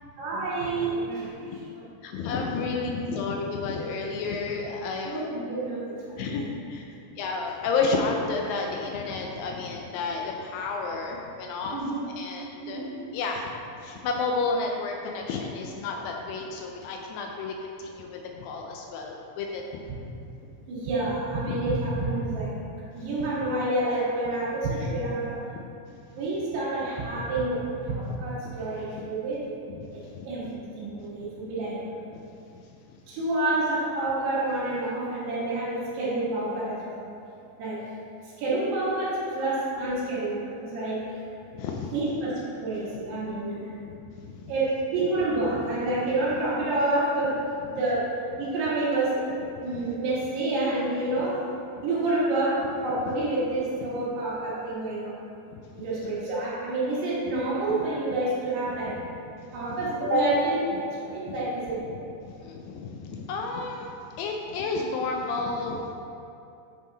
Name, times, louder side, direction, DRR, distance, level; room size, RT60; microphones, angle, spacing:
voice 1, 0.2-1.6 5.1-6.4 11.7-12.0 12.6-12.9 20.7-22.5 22.9-25.4 26.2-29.4 29.9-31.8 33.1-37.0 37.6-37.8 38.4-41.0 41.9-42.3 42.6-43.6 44.5-48.1 48.4-49.2 49.6-51.4 51.8-55.2 55.8-59.0 59.5-61.8, right 2 dB, 85° right, -8 dB, 3.6 m, -28 dB
voice 2, 2.0-5.2 6.2-6.9 7.2-12.9 13.1-13.5 13.8-17.5 17.8-19.6 25.6-25.7 28.9-29.1 29.7-29.9 30.1-30.3 32.1-32.2 41.5-41.9 43.9-44.5 49.6-49.9 53.1-53.2 54.0-54.1 55.5-56.1 58.1-58.2 58.6-58.7 59.5-59.9 61.3-61.4 61.9-62.0 62.3-66.0, left 4 dB, 90° left, 1 dB, 2.0 m, -31 dB
9.1 x 3.7 x 3.9 m, 2.6 s
omnidirectional pair, 4.7 m